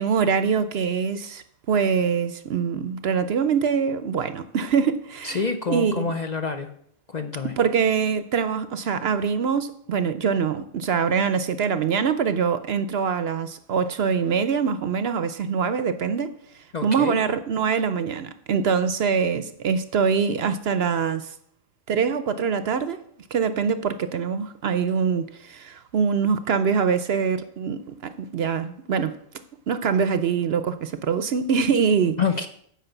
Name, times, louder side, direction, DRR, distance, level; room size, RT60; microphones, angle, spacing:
voice 1, 0.0-5.4 5.7-6.1 7.4-16.3 16.8-21.3 21.9-23.0 23.3-29.2 29.7-32.2, right 6 dB, 60° right, 0.8 m, -24 dB
voice 2, 5.2-6.7 7.1-7.5 16.7-17.2 32.2-32.5, left 5 dB, 45° left, 0.6 m, -27 dB
9.1 x 5.3 x 8.0 m
omnidirectional pair, 1.3 m